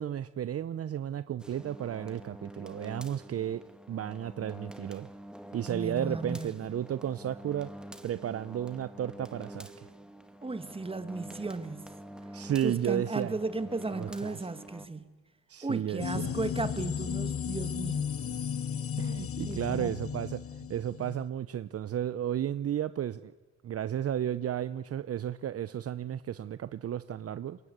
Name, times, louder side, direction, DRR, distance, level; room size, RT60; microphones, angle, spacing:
voice 1, 0.0-3.6 3.9-5.1 5.5-7.7 8.0-9.9 12.3-13.3 14.0-14.4 15.5-16.3 19.0-20.4 20.7-23.3 23.6-27.6, right 10 dB, 50° right, 0.8 m, -33 dB
sound 1, 1.4-14.9, right 1 dB, 5° right, 2.1 m, -47 dB
voice 2, 5.7-6.6 10.4-11.9 12.6-15.1 15.6-18.1 19.5-20.1, right 3 dB, 20° right, 2.3 m, -35 dB
sound 2, 16.0-21.3, left 8 dB, 50° left, 1.2 m, -34 dB
26.5 x 22.5 x 8.1 m
cardioid pair, 90°, 30 cm